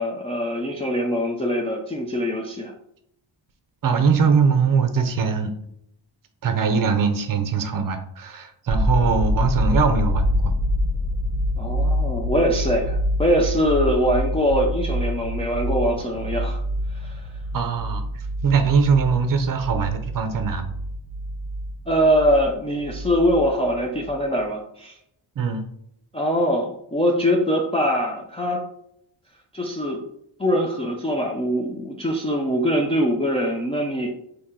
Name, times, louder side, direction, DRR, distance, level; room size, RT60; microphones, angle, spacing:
voice 1, 0.0-2.7 11.6-16.6 16.9-17.2 21.9-25.0 26.1-28.6 29.5-30.0 30.4-34.1, equal, 15° left, -1 dB, 0.3 m, -23 dB
voice 2, 3.8-5.5 6.4-10.5 17.5-20.7 25.4-25.6, right 5 dB, 45° right, 7 dB, 0.6 m, -21 dB
sound 1, 8.7-22.5 22.8-23.7, left 1 dB, 15° right, 1.0 m, -26 dB
3.7 x 2.7 x 4.2 m, 0.74 s
wide cardioid pair, 165°, 48 cm